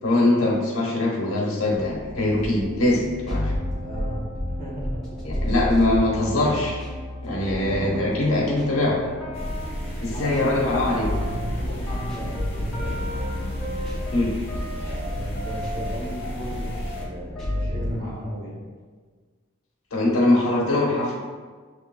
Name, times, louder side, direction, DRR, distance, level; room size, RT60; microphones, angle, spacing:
voice 1, 0.0-3.5 5.2-6.8 7.2-9.0 10.0-11.1 14.1-14.3 19.9-21.2, left 2 dB, 85° left, -3 dB, 1.1 m, -22 dB
sound 1, 1.7-17.9, left 1 dB, ahead, 1.1 m, -31 dB
voice 2, 3.8-4.3 4.6-5.4 5.7-6.1 7.6-9.2 10.1-13.1 14.7-18.7, equal, 40° right, -6 dB, 1.4 m, -36 dB
sound 2, 9.3-17.1, equal, 30° left, 1.1 m, -33 dB
6.6 x 3.5 x 2.2 m, 1.5 s
head